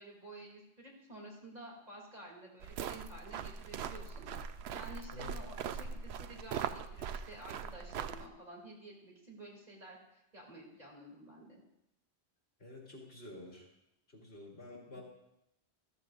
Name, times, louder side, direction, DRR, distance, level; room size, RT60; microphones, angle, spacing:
voice 1, 0.0-4.2 4.7-11.6 14.9-15.0, right 1 dB, 40° right, -2 dB, 2.7 m, -51 dB
sound 1, 2.6-8.3, right 7 dB, 75° right, 0.8 m, -41 dB
voice 2, 12.6-13.7 14.1-15.0, left 2 dB, 70° left, -2 dB, 2.9 m, -50 dB
14.0 x 13.5 x 2.5 m, 0.85 s
omnidirectional pair, 1.1 m